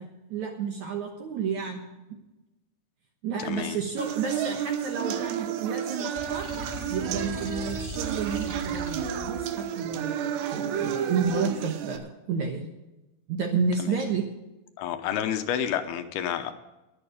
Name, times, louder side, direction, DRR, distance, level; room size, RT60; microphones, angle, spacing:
voice 1, 0.0-1.8 3.2-6.5 6.9-12.6 13.3-14.3, right 5 dB, 65° right, 3 dB, 1.9 m, -31 dB
voice 2, 3.4-3.8 13.8-13.9 14.8-16.5, left 9 dB, 75° left, 8 dB, 2.7 m, -29 dB
sound 1, 4.0-12.0, right 9 dB, 90° right, 3.1 m, -31 dB
sound 2, 6.1-9.5, equal, 10° right, 1.2 m, -38 dB
21.0 x 7.1 x 5.1 m, 1.0 s
omnidirectional pair, 4.7 m